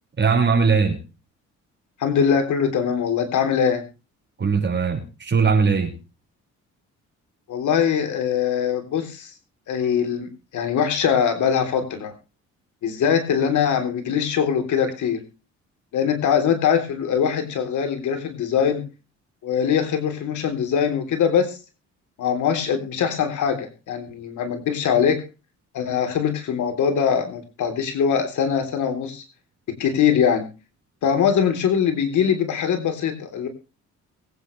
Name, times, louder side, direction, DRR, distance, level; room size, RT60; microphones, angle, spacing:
voice 1, 0.2-1.0 4.4-5.9, right 5 dB, 35° right, 3 dB, 5.3 m, -20 dB
voice 2, 2.0-3.8 7.5-9.3 9.7-12.1 12.8-15.2 15.9-18.8 19.4-21.6 22.2-25.2 25.7-29.2 29.7-30.5 31.0-33.5, left 7 dB, 75° left, 6 dB, 3.7 m, -22 dB
23.0 x 9.2 x 3.3 m, 0.32 s
cardioid pair, 90°, 30 cm